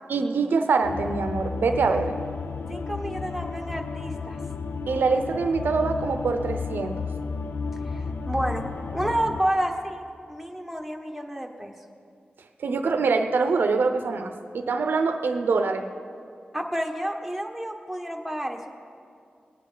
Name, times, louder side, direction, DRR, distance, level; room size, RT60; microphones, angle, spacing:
voice 1, 0.1-2.1 4.9-7.0 12.6-15.9, right 4 dB, 85° right, 6 dB, 0.6 m, -24 dB
sound 1, 0.8-9.4, left 4 dB, 90° left, 0.6 m, -33 dB
voice 2, 2.7-4.4 7.8-10.0 10.3-11.7 16.5-18.8, right 1 dB, ahead, 2 dB, 1.3 m, -30 dB
20.0 x 9.3 x 4.0 m, 2.4 s
cardioid pair, 60°, 3 cm